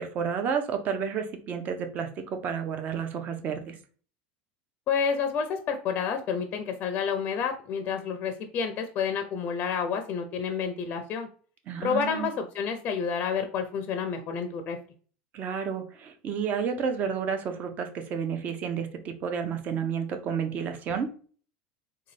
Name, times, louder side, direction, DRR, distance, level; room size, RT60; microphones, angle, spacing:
voice 1, 0.0-3.8 11.7-12.3 15.3-21.1, right 7 dB, 35° right, 6 dB, 0.6 m, -31 dB
voice 2, 4.9-11.3 11.8-14.8, left 6 dB, 35° left, 6 dB, 0.5 m, -29 dB
3.8 x 2.2 x 3.2 m, 0.42 s
supercardioid pair, 135°, 5 cm